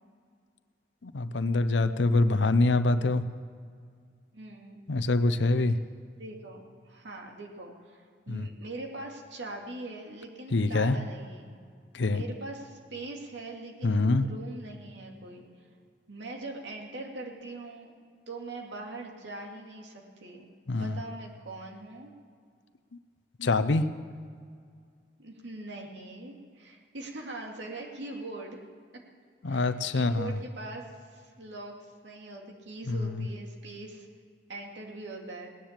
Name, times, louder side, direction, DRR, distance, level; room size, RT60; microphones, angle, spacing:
voice 1, 1.0-3.2 4.9-5.8 8.3-8.5 10.5-11.0 11.9-12.2 13.8-14.2 20.7-21.0 23.4-23.8 29.4-30.3 32.9-33.3, left 2 dB, 85° left, 11 dB, 0.7 m, -25 dB
voice 2, 4.3-4.8 6.2-11.5 12.1-15.4 16.1-17.9 18.3-22.1 25.2-28.6 29.4-31.7 32.0-34.1 34.5-35.5, right 2 dB, 85° right, 0 dB, 2.3 m, -42 dB
18.5 x 10.5 x 7.4 m, 2.1 s
head